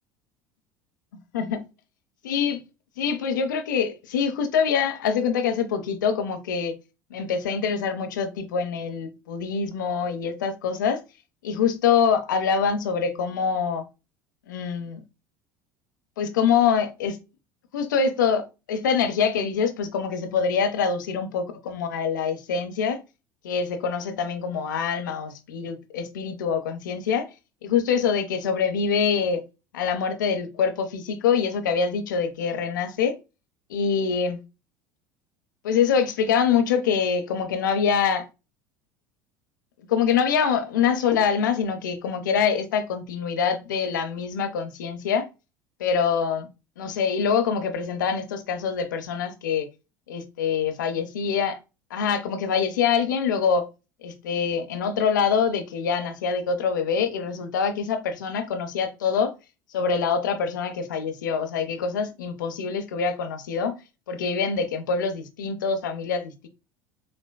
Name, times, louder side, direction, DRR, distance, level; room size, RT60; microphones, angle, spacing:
voice 1, 2.2-2.6 3.0-6.7 7.1-11.0 11.4-13.8 14.5-15.0 16.2-17.2 17.7-23.0 23.4-27.3 27.6-29.4 29.7-33.2 33.7-34.4 35.6-38.3 39.9-45.3 45.8-46.5 46.8-49.7 50.1-51.6 51.9-53.7 54.0-59.3 59.7-63.7 64.1-66.5, left 6 dB, 75° left, 0.6 m, -25 dB
5.8 x 2.2 x 2.2 m
figure-of-eight pair, 70°, 10 cm